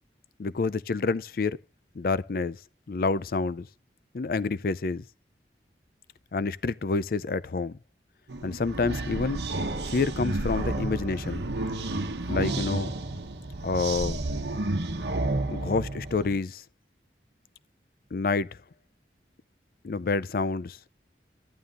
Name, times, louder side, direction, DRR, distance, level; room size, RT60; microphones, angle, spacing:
voice 1, 0.4-1.6 2.0-2.6 2.9-3.7 4.1-5.0 6.3-7.8 8.4-9.4 9.9-11.4 12.3-12.9 13.6-14.2 15.5-16.6 18.1-18.6 19.8-20.8, left 4 dB, 55° left, 0.4 m, -28 dB
sound 1, 8.3-16.4, right 2 dB, 70° right, 1.0 m, -31 dB
11.5 x 11.0 x 2.5 m
head